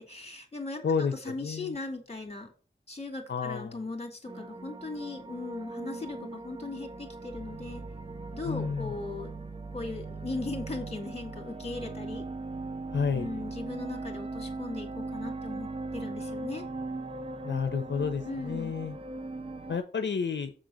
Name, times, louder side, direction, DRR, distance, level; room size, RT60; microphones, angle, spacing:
voice 1, 0.0-0.8 1.1-2.5 2.9-7.8 8.3-9.3 9.7-12.2 13.1-16.6 18.2-18.8, left 3 dB, 35° left, 4 dB, 2.4 m, -38 dB
voice 2, 0.8-1.8 3.3-3.8 8.4-8.9 12.9-13.3 17.4-19.0 19.7-20.5, left 6 dB, 75° left, 8 dB, 0.6 m, -31 dB
sound 1, 4.2-19.8, right 3 dB, 30° right, 0.7 m, -39 dB
7.6 x 3.8 x 6.3 m, 0.41 s
wide cardioid pair, 90°, 19 cm